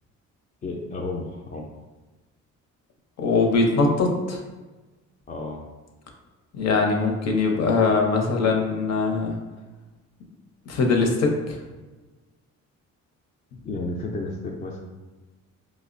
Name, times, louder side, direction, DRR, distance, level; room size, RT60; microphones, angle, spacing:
voice 1, 0.6-1.7 5.3-5.6 13.6-14.8, left 2 dB, 30° left, -1 dB, 0.4 m, -32 dB
voice 2, 3.2-4.4 6.5-9.3 10.7-11.6, left 3 dB, 60° left, 2 dB, 0.7 m, -22 dB
5.0 x 2.0 x 2.5 m, 1.2 s
cardioid pair, 90°, 30 cm